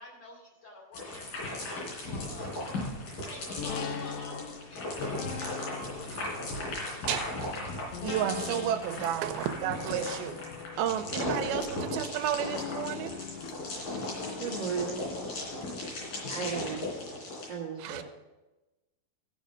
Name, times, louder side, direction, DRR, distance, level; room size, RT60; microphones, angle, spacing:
voice 1, 0.0-2.9 3.3-6.1 6.4-6.6, left 2 dB, 40° left, -2 dB, 3.4 m, -48 dB
sound 1, 0.9-17.5, left 2 dB, 65° left, 4.9 m, -37 dB
sound 2, 3.6-16.5 16.9-17.0, left 7 dB, 90° left, 1.8 m, -43 dB
voice 2, 8.0-10.4 10.8-13.2 13.9-14.0 17.8-18.0, right 10 dB, 90° right, 8 dB, 2.5 m, -32 dB
voice 3, 14.4-15.3 16.3-16.9 17.5-18.0, right 6 dB, 60° right, -4 dB, 1.2 m, -35 dB
14.0 x 5.5 x 6.3 m, 1.1 s
omnidirectional pair, 4.4 m